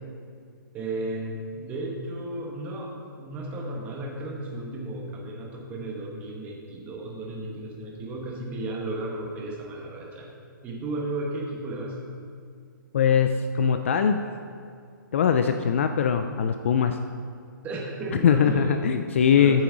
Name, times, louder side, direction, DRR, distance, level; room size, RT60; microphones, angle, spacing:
voice 1, 0.7-10.3 10.6-12.0 17.6-18.8 19.4-19.6, right 2 dB, 15° right, -1 dB, 1.0 m, -34 dB
voice 2, 12.9-14.2 15.1-17.0 18.2-19.6, left 7 dB, 35° left, 7 dB, 0.4 m, -21 dB
13.5 x 7.2 x 3.8 m, 2.2 s
hypercardioid pair, 165°, 11 cm